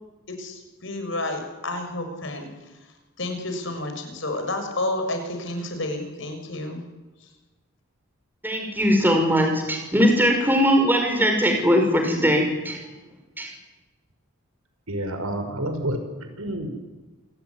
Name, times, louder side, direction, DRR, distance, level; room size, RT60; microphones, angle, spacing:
voice 1, 0.3-2.5 3.2-6.8 7.2-7.3, left 2 dB, 60° left, 6 dB, 6.7 m, -30 dB
voice 2, 8.4-12.8 13.4-13.5, equal, 10° right, 3 dB, 6.0 m, -20 dB
voice 3, 14.9-16.0 16.4-16.7, right 1 dB, 85° right, 6 dB, 6.0 m, -28 dB
27.5 x 19.0 x 10.0 m, 1.2 s
head